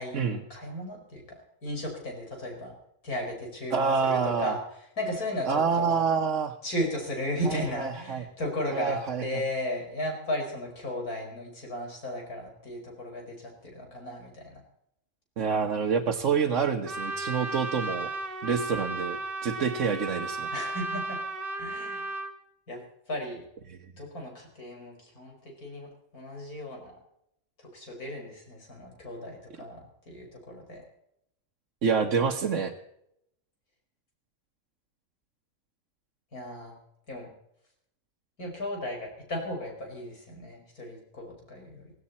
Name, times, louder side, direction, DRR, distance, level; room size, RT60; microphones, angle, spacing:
voice 1, 0.0-2.7 3.0-4.6 5.0-6.0 6.6-14.6 20.5-21.2 21.6-22.1 22.7-22.8 23.1-23.4 24.0-27.0 27.6-30.8 36.3-36.8 37.1-37.3 38.4-41.9, left 1 dB, 85° left, 1 dB, 5.9 m, -35 dB
voice 2, 3.7-4.6 5.5-6.5 7.4-8.2 8.7-9.2 15.4-18.1 18.4-20.5 31.8-32.7, right 6 dB, 60° right, 2 dB, 1.4 m, -27 dB
Trumpet, 16.8-22.3, right 2 dB, 40° right, 1.9 m, -34 dB
17.0 x 17.0 x 4.3 m, 0.76 s
omnidirectional pair, 1.5 m